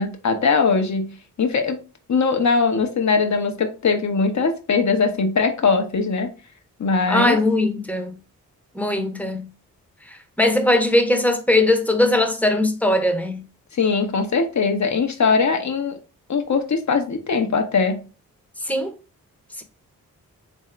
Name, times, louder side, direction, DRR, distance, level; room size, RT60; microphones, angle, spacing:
voice 1, 0.0-1.8 2.1-6.3 6.8-7.4 13.7-16.0 16.3-18.0, left 4 dB, 50° left, 0.9 m, -21 dB
voice 2, 7.1-8.1 8.7-9.5 10.1-13.4 18.6-18.9 19.6-19.7, left 1 dB, 5° left, 0.9 m, -20 dB
3.6 x 2.7 x 3.2 m
cardioid pair, 50°, 36 cm